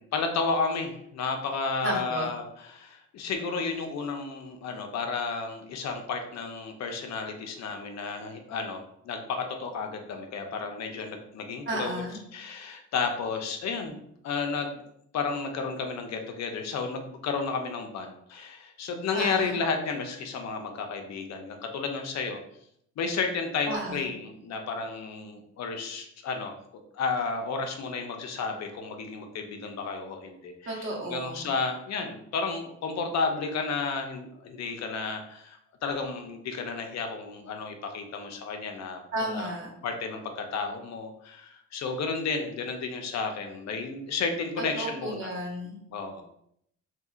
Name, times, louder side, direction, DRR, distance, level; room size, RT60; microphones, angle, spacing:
voice 1, 0.0-12.0 12.3-13.9 14.2-14.8 15.1-22.4 23.0-26.5 26.9-39.5 39.8-45.3 45.9-46.2, left 4 dB, 60° left, 4 dB, 0.5 m, -32 dB
voice 2, 1.8-2.3 11.7-12.2 19.1-19.6 23.7-24.1 30.7-31.5 39.1-39.7 44.8-45.8, right 1 dB, 40° right, -2 dB, 1.0 m, -33 dB
2.8 x 2.7 x 2.4 m, 0.72 s
cardioid pair, 90°, 30 cm